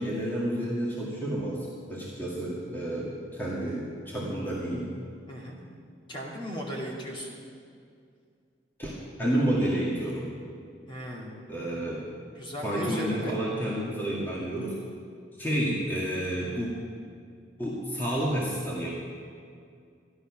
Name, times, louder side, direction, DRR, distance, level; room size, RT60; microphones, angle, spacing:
voice 1, 0.0-4.9 8.8-10.3 11.5-12.1 12.6-14.8 15.4-16.7 17.6-18.9, right 1 dB, 10° left, -6 dB, 1.9 m, -30 dB
voice 2, 5.3-5.6 6.1-7.4 10.9-11.3 12.3-13.3, equal, 30° left, -3 dB, 2.3 m, -36 dB
13.5 x 11.5 x 6.0 m, 2.3 s
head